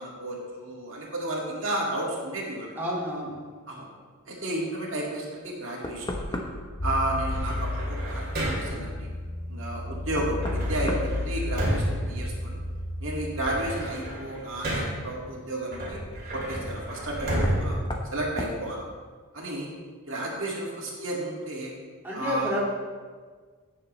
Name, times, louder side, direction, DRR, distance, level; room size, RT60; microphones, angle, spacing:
voice 1, 0.0-2.7 3.7-3.9 4.3-6.3 6.8-9.1 9.5-12.6 13.0-16.0 16.3-17.8 18.1-18.8 19.3-19.7 20.1-21.7 22.1-22.5, right 1 dB, 60° right, -3 dB, 2.2 m, -32 dB
voice 2, 2.8-3.4 22.0-22.6, equal, 10° right, -7 dB, 2.2 m, -29 dB
Knock, 5.4-5.5 5.8-6.8 9.2-9.3 10.1-11.9 12.3-12.8 14.6-14.7 17.4-17.7 17.9-18.1 18.4-18.6, left 1 dB, 20° left, 0.9 m, -35 dB
sound 1, 6.8-13.3, left 2 dB, 55° left, 1.2 m, -32 dB
sound 2, 7.3-8.9 10.4-12.8 13.2-15.1 15.7-18.7, right 1 dB, 45° right, 2.7 m, -32 dB
16.5 x 7.1 x 3.2 m, 1.6 s
head